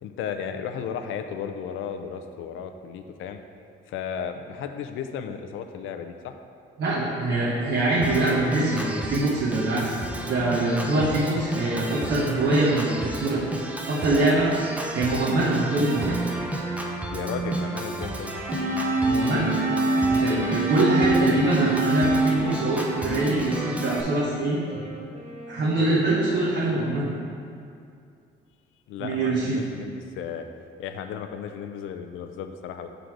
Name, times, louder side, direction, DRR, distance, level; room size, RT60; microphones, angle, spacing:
voice 1, 0.0-3.4 3.9-6.3 17.1-18.3 28.9-30.5 30.8-32.9, left 7 dB, 85° left, 7 dB, 0.5 m, -34 dB
voice 2, 6.8-9.9 10.2-13.4 13.8-14.5 14.9-16.2 19.0-19.6 20.1-24.8 25.5-27.1 29.0-29.6, right 2 dB, 65° right, -7 dB, 1.1 m, -24 dB
Organ, 8.0-24.0, right 1 dB, 5° right, 0.6 m, -32 dB
sound 1, 18.5-23.5, right 2 dB, 85° right, 1.4 m, -25 dB
Wind instrument woodwind instrument, 19.5-27.5, right 2 dB, 35° right, 0.9 m, -42 dB
6.4 x 3.9 x 4.5 m, 2.4 s
cardioid pair, 90°, 20 cm